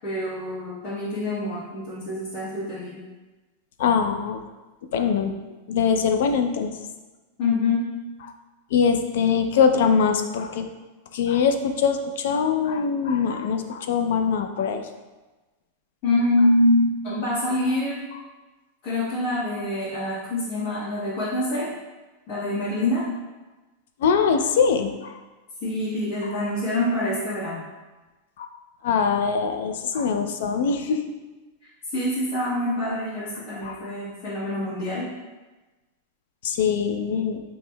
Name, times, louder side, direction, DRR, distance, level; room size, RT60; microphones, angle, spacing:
voice 1, 0.0-3.0 7.4-7.8 16.0-18.0 18.8-21.7 22.3-23.0 25.6-27.6 31.9-35.1, left 1 dB, 50° left, -11 dB, 1.3 m, -25 dB
voice 2, 3.8-4.4 4.9-5.3 5.7-6.7 8.7-10.7 11.1-14.8 24.0-25.2 26.3-26.4 28.4-28.5 28.8-31.0 33.6-33.8 36.4-37.4, left 6 dB, 70° left, 7 dB, 0.4 m, -22 dB
6.2 x 3.0 x 2.2 m, 1.2 s
supercardioid pair, 155°, 0 cm